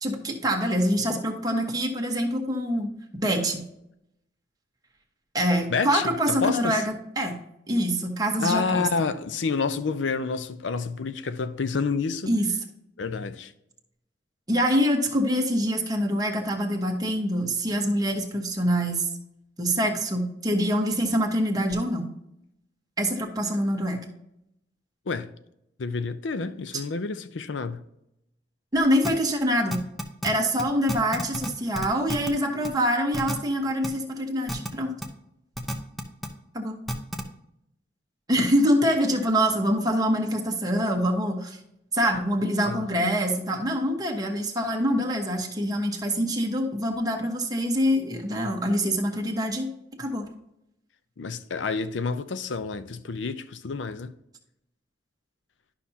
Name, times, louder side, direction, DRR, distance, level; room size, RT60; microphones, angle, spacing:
voice 1, 0.0-2.9 3.2-3.6 5.3-6.8 7.2-7.3 7.7-8.9 12.3-12.5 14.5-19.1 19.6-22.1 23.0-24.1 28.7-29.8 30.2-34.9 36.5-36.7 38.3-41.6 41.9-49.7 50.0-50.3, equal, 20° right, 1.1 m, -25 dB
voice 2, 5.7-6.8 8.4-12.4 13.0-13.5 25.1-25.3 25.8-27.8 42.6-42.9 51.2-54.1, left 4 dB, 85° left, 0.6 m, -29 dB
sound 1, 29.0-29.1 29.7-30.3 30.6-30.7 30.9-31.5 31.7-32.3 32.6-32.7 33.1-33.3 33.8-33.9 34.5-34.7 35.0-35.1 35.6-36.3 36.9-37.2, equal, ahead, 0.7 m, -30 dB
11.5 x 5.7 x 2.8 m
head